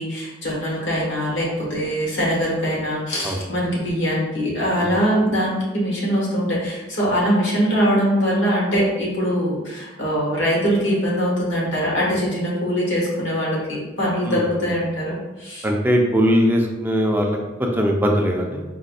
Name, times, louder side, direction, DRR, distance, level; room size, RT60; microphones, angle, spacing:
voice 1, 0.0-15.7, equal, 65° left, -5 dB, 1.1 m, -22 dB
voice 2, 15.6-18.6, equal, 10° right, 1 dB, 0.3 m, -20 dB
4.3 x 2.5 x 2.3 m, 1.1 s
head